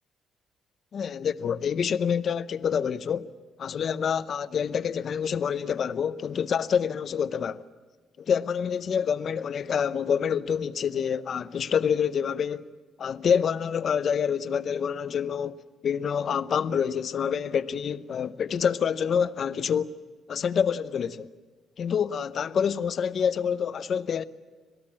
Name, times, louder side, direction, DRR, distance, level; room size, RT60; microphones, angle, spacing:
voice 1, 0.9-3.3 3.6-7.6 8.2-12.7 13.0-19.9 20.3-21.3 21.8-24.2, left 7 dB, 55° left, 0.7 m, -27 dB
26.5 x 17.5 x 8.6 m
cardioid pair, 90°, 0 cm